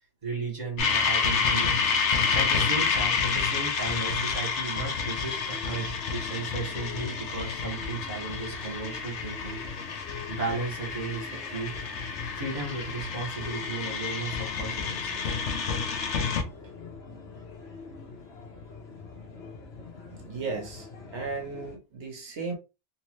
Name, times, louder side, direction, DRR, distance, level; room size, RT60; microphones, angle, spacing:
voice 1, 0.2-1.7 2.3-9.6 10.3-11.7 12.4-15.3, right 3 dB, 40° right, 2.0 m, -35 dB
sound 1, 0.8-16.4, left 5 dB, 90° left, 1.1 m, -29 dB
sound 2, 4.9-21.8, left 4 dB, 65° left, 1.2 m, -44 dB
voice 2, 20.1-22.5, right 4 dB, 90° right, 1.3 m, -36 dB
3.3 x 3.1 x 3.1 m
omnidirectional pair, 1.1 m